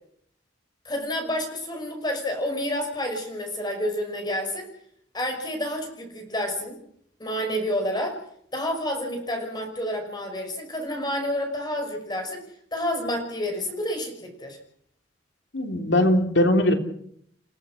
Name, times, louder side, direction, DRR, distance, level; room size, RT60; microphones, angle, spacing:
voice 1, 0.8-4.7 5.1-6.8 7.2-8.2 8.5-12.4 12.7-14.6, left 1 dB, 25° left, 4 dB, 6.1 m, -29 dB
voice 2, 15.5-16.7, left 1 dB, 70° left, 5 dB, 3.1 m, -20 dB
29.0 x 17.0 x 6.3 m, 0.69 s
head